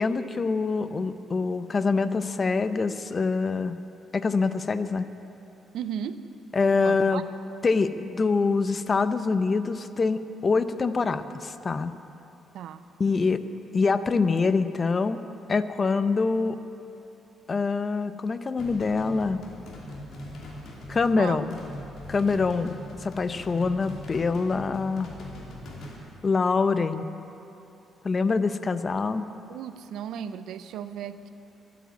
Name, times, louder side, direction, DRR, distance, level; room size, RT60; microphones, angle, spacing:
voice 1, 0.0-3.8 4.1-5.1 6.5-7.2 7.6-12.0 13.0-13.4 13.7-15.2 15.5-16.6 17.5-19.4 20.9-21.6 22.1-25.1 26.2-27.0 28.0-29.3, left 4 dB, 35° left, 12 dB, 0.6 m, -25 dB
voice 2, 5.7-6.2 6.8-7.2 12.5-12.8 21.2-21.4 29.5-31.3, right 9 dB, 80° right, 12 dB, 0.6 m, -35 dB
sound 1, 18.6-26.0, left 1 dB, 70° left, 2.7 m, -41 dB
12.0 x 8.4 x 9.3 m, 2.8 s
cardioid pair, 90°, 0 cm